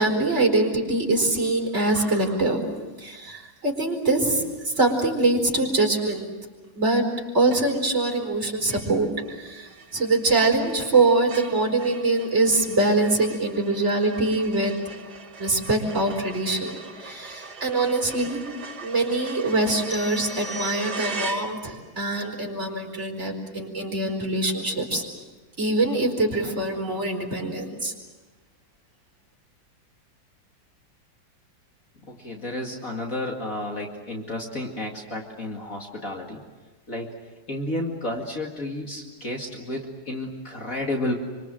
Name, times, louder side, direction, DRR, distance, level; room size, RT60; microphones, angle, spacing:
voice 1, 0.0-2.6 3.0-6.3 6.7-7.0 7.3-14.8 15.4-18.4 18.8-25.0 25.6-27.9, right 2 dB, 35° right, 0 dB, 4.8 m, -24 dB
sound 1, 7.5-8.0 8.3-8.4 8.7-22.0, right 3 dB, 60° right, 2.4 m, -40 dB
sound 2, 19.9-21.4, right 1 dB, 20° left, 0.4 m, -39 dB
voice 2, 32.1-36.4 36.9-37.1 37.5-41.1, left 1 dB, 45° left, 0 dB, 2.6 m, -31 dB
26.5 x 25.5 x 7.7 m, 1.2 s
omnidirectional pair, 2.0 m